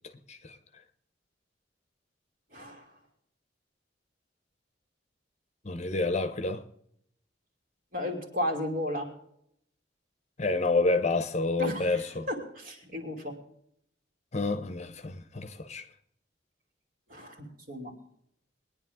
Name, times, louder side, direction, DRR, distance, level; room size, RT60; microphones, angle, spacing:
voice 1, 2.5-2.9 7.9-9.1 11.6-13.3 17.1-17.9, left 1 dB, 45° right, 2.9 m, -34 dB
voice 2, 5.6-6.6 10.4-12.3 14.3-15.8, left 3 dB, 35° left, 0.9 m, -29 dB
21.5 x 10.0 x 3.7 m
head